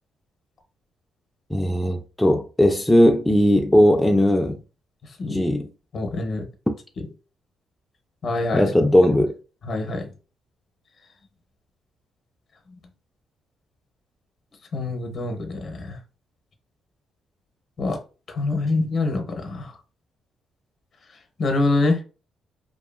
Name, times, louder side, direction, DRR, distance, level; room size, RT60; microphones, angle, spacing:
voice 1, 1.5-4.6 5.2-5.7 8.5-9.4, equal, 5° left, 0.3 m, -18 dB
voice 2, 5.9-6.5 8.2-8.7 9.6-10.1 14.7-16.0 17.8-18.0 18.3-19.7 21.4-22.0, left 2 dB, 55° left, 0.7 m, -25 dB
2.6 x 2.4 x 2.4 m
cardioid pair, 90°, 0 cm